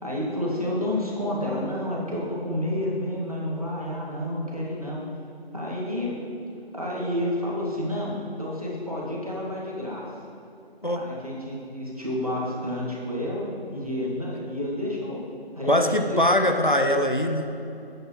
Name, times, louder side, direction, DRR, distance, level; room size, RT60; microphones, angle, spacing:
voice 1, 0.0-5.0 5.5-6.2 6.7-10.1 10.9-15.2 15.6-16.4, left 1 dB, 35° right, -5 dB, 2.0 m, -30 dB
voice 2, 15.7-17.5, left 1 dB, 50° left, 4 dB, 0.6 m, -22 dB
11.5 x 8.8 x 3.2 m, 2.7 s
figure-of-eight pair, 175°, 31 cm